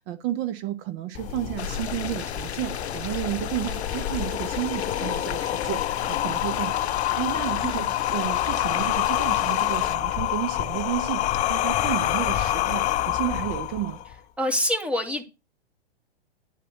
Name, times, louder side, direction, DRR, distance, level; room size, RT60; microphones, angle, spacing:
voice 1, 0.0-14.0, right 13 dB, 35° right, 0.9 m, -32 dB
sound 1, 1.1-14.1, left 13 dB, 25° left, 0.6 m, -27 dB
sound 2, 1.6-10.0, left 9 dB, 90° left, 0.6 m, -36 dB
voice 2, 14.4-15.2, left 1 dB, 5° right, 2.0 m, -26 dB
11.0 x 4.1 x 7.7 m
hypercardioid pair, 120°, 32 cm